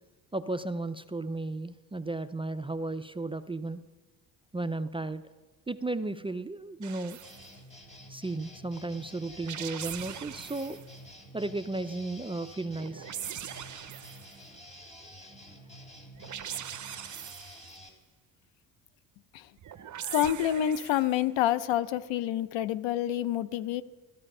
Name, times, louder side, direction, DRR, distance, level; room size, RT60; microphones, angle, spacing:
voice 1, 0.3-3.8 4.5-5.2 5.7-7.2 8.1-10.8 11.3-13.1, right 2 dB, 15° right, 0.4 m, -34 dB
sound 1, 6.8-7.5 9.3-10.9 12.7-14.4 16.1-17.8 19.6-21.2, right 10 dB, 40° right, 0.8 m, -41 dB
sound 2, 7.2-17.9, equal, 15° left, 2.8 m, -50 dB
voice 2, 20.1-23.8, left 11 dB, 80° left, 0.7 m, -28 dB
13.5 x 13.0 x 5.4 m
cardioid pair, 95°, 45 cm